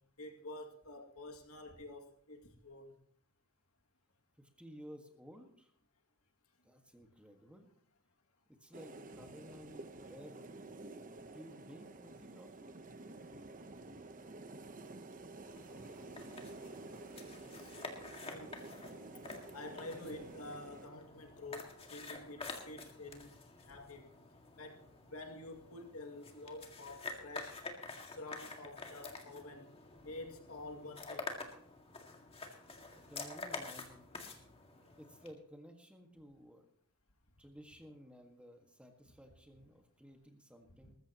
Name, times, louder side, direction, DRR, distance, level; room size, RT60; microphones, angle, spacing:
voice 1, 0.2-3.0 17.5-17.7 18.2-18.6 19.5-24.1 24.6-24.8 25.1-27.5 28.0-29.7 30.0-31.3 40.8-40.9, left 2 dB, 75° left, 2 dB, 2.3 m, -49 dB
voice 2, 4.4-5.7 6.6-7.7 8.6-10.7 11.3-12.8 32.9-34.1 34.9-36.7 37.4-40.9, equal, 5° right, 3 dB, 1.7 m, -55 dB
sound 1, 8.7-20.9, right 2 dB, 40° right, 0.9 m, -51 dB
sound 2, 15.5-35.3, left 3 dB, 25° left, 2.0 m, -49 dB
21.0 x 14.5 x 3.0 m, 0.62 s
head